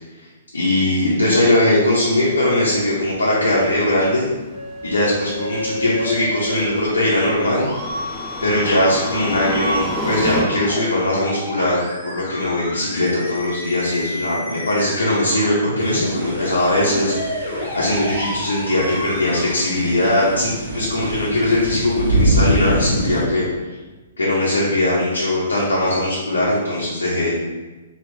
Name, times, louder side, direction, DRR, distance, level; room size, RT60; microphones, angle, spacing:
voice 1, 0.5-4.2 4.8-7.7 8.4-23.5 24.2-27.4, left 1 dB, 90° left, -6 dB, 0.7 m, -20 dB
sound 1, 1.9-10.4, left 1 dB, 10° left, 0.6 m, -31 dB
Musical instrument, 4.5-20.5, equal, 55° left, 1.2 m, -31 dB
sound 2, 15.8-23.2, right 1 dB, 75° right, 0.7 m, -25 dB
3.0 x 2.4 x 3.2 m, 1.2 s
hypercardioid pair, 130°, 0 cm